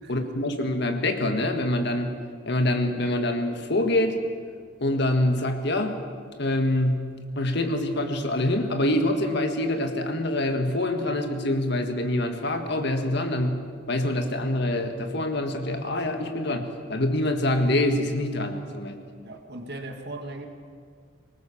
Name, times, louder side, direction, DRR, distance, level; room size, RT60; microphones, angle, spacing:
voice 1, 0.1-4.2 4.8-6.0 6.4-19.0, left 1 dB, 55° left, 5 dB, 1.8 m, -25 dB
voice 2, 19.2-20.5, right 2 dB, 50° right, 4 dB, 2.1 m, -38 dB
23.5 x 20.0 x 7.2 m, 2.1 s
head